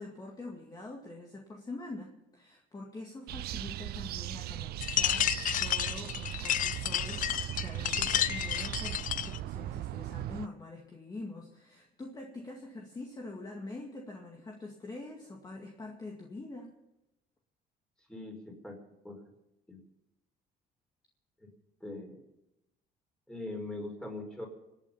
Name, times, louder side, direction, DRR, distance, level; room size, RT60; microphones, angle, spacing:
voice 1, 0.0-5.3 5.6-16.7, left 2 dB, 25° left, 0 dB, 2.0 m, -45 dB
sound 1, 3.3-10.5, right 15 dB, 70° right, 0.5 m, -38 dB
sound 2, 4.8-9.4, left 11 dB, 50° left, 0.5 m, -31 dB
voice 2, 18.1-18.8 19.0-19.2 19.7-19.8 21.4-21.5 21.8-22.2 23.3-24.5, left 2 dB, 5° left, 1 dB, 4.9 m, -41 dB
26.0 x 9.1 x 5.6 m, 0.89 s
cardioid pair, 110°, 17 cm